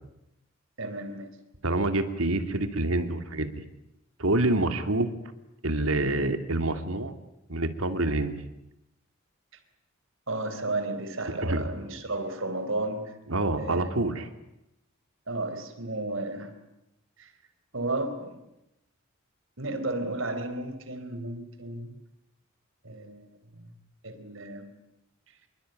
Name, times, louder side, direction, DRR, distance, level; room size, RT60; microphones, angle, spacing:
voice 1, 0.8-1.3 10.3-13.2 13.5-14.2 15.3-16.5 17.2-17.3 17.7-18.4 19.6-22.0 22.8-23.7 24.0-24.7, right 2 dB, 70° right, 9 dB, 4.2 m, -33 dB
voice 2, 1.6-3.5 4.2-5.1 5.6-7.1 7.5-8.3 11.4-11.6 13.3-14.2, right 2 dB, 90° right, 8 dB, 2.8 m, -26 dB
27.5 x 23.0 x 9.2 m, 0.86 s
head